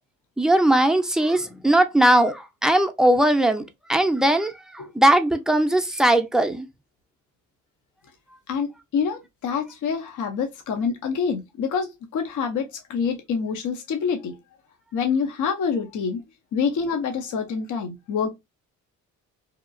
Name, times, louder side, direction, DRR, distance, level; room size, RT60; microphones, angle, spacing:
voice 1, 0.4-3.6 3.9-6.7, right 1 dB, ahead, 0.5 m, -19 dB
voice 2, 8.5-14.4 14.9-16.2 16.5-18.3, left 6 dB, 60° left, 0.7 m, -26 dB
2.8 x 2.3 x 2.5 m
supercardioid pair, 70°, 34 cm